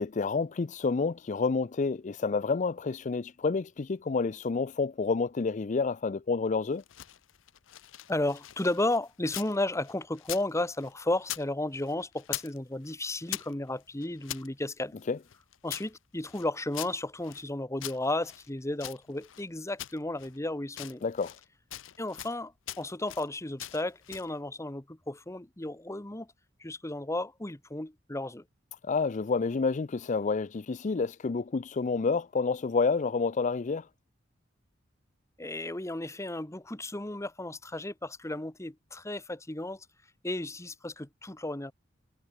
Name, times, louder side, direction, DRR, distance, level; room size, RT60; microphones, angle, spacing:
voice 1, 0.0-6.8 15.1-15.2 21.0-21.3 28.8-33.9, left 4 dB, 40° left, 0.5 m, -29 dB
sound 1, 6.7-9.6 9.8-11.5 11.7-12.6 12.8-14.5 15.0-17.5 17.8-19.4 19.8-20.4 20.7-21.4 21.7-22.4 22.7-23.3 23.6-24.3, left 14 dB, 85° left, 0.6 m, -42 dB
voice 2, 8.1-14.9 15.6-21.0 22.0-26.3 26.6-28.4 35.4-39.9 40.2-41.7, left 1 dB, 15° left, 1.2 m, -33 dB
head